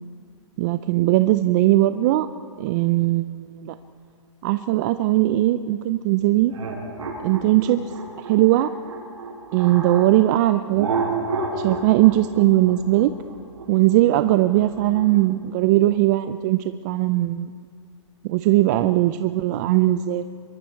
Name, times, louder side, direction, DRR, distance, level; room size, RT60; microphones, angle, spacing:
voice 1, 0.6-2.3 2.6-3.8 4.4-6.5 7.2-7.8 8.3-8.7 9.5-10.9 11.5-13.1 13.7-17.5 18.2-20.2, right 15 dB, 35° right, 11 dB, 0.5 m, -19 dB
sound 1, 6.5-10.1 10.7-15.2, right 4 dB, 85° right, 7.0 m, -30 dB
24.5 x 23.0 x 4.6 m, 2.2 s
hypercardioid pair, 145°, 16 cm